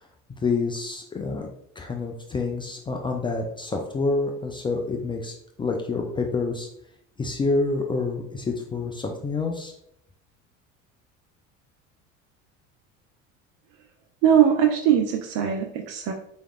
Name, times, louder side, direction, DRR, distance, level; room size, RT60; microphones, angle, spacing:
voice 1, 0.4-1.5 1.8-6.7 7.2-9.7, left 3 dB, 15° left, 1 dB, 0.3 m, -27 dB
voice 2, 14.2-16.1, right 9 dB, 50° right, 4 dB, 0.5 m, -20 dB
4.6 x 3.4 x 2.3 m, 0.73 s
figure-of-eight pair, 65°, 39 cm